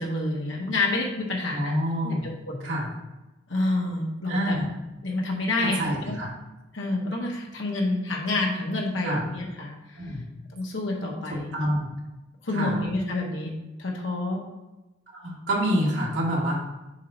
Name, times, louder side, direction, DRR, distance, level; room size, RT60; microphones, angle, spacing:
voice 1, 0.0-1.8 2.0-2.7 3.5-4.6 5.0-6.2 6.7-10.2 10.5-11.5 12.4-13.5 13.8-14.4, left 2 dB, 80° left, -1 dB, 1.3 m, -28 dB
voice 2, 1.5-2.3 2.6-2.9 4.3-4.7 5.6-6.3 9.0-9.2 10.0-10.2 11.3-11.9 12.5-12.7 15.1-16.5, equal, 75° right, -4 dB, 2.1 m, -27 dB
7.2 x 3.0 x 5.5 m, 1.0 s
head